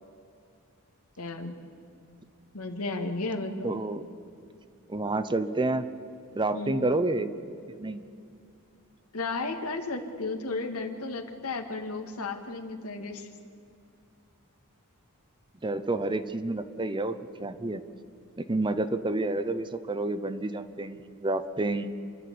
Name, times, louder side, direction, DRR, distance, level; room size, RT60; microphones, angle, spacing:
voice 1, 1.2-1.6 2.5-3.8 6.5-6.8 9.1-13.3, left 3 dB, 80° left, 4 dB, 2.0 m, -34 dB
voice 2, 3.6-4.0 4.9-5.9 6.3-7.3 7.7-8.0 15.6-17.8 18.4-21.9, right 2 dB, 20° right, 11 dB, 0.7 m, -29 dB
28.5 x 11.5 x 8.5 m, 2.5 s
head